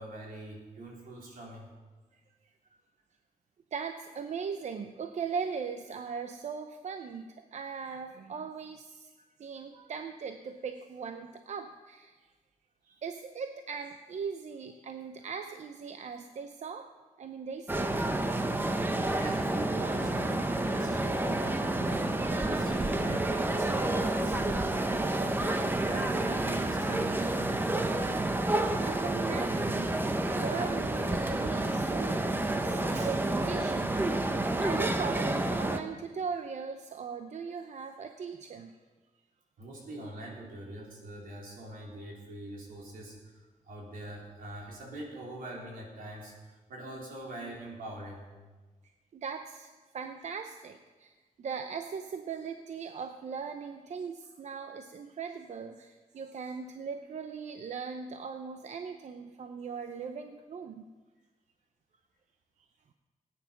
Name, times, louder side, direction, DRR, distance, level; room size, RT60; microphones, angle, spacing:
voice 1, 0.0-1.7 9.7-9.9 12.8-13.0 19.1-24.8 25.1-27.7 28.5-28.8 39.6-48.3 56.1-56.3, right 1 dB, 80° right, -2 dB, 4.0 m, -43 dB
voice 2, 2.1-2.5 3.7-12.3 13.0-16.9 17.2-18.0 28.8-29.9 30.3-34.3 34.6-38.8 48.8-60.8, right 6 dB, 55° right, 7 dB, 0.7 m, -39 dB
sound 1, 17.7-35.8, right 2 dB, 15° right, 0.8 m, -29 dB
17.0 x 9.6 x 5.9 m, 1.3 s
wide cardioid pair, 145°, 14 cm